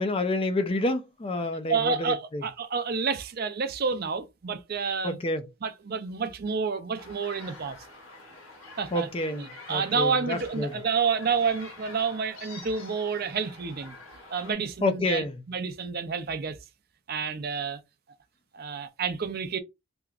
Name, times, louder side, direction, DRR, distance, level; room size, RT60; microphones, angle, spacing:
voice 1, 0.0-2.4 5.0-5.5 8.9-10.8 14.8-15.4, left 2 dB, 25° left, 0.4 m, -28 dB
voice 2, 1.7-5.2 5.6-7.8 8.8-9.1 9.3-14.0 14.3-16.6 17.1-17.8 18.5-19.6, right 5 dB, 45° right, 0.5 m, -29 dB
sound 1, 7.0-14.5, left 2 dB, 75° left, 2.1 m, -47 dB
3.4 x 2.8 x 2.4 m
head